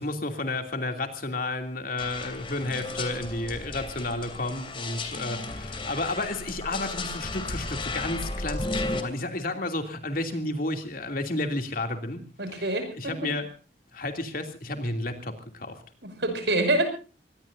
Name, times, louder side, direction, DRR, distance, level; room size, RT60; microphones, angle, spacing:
voice 1, 0.0-13.5 13.9-15.8, left 2 dB, 55° left, 5 dB, 2.8 m, -32 dB
sound 1, 2.0-9.0, left 2 dB, 30° left, 2.7 m, -34 dB
voice 2, 12.4-13.3 16.0-16.8, right 2 dB, 80° right, 7 dB, 5.9 m, -26 dB
24.0 x 20.5 x 2.7 m, 0.35 s
head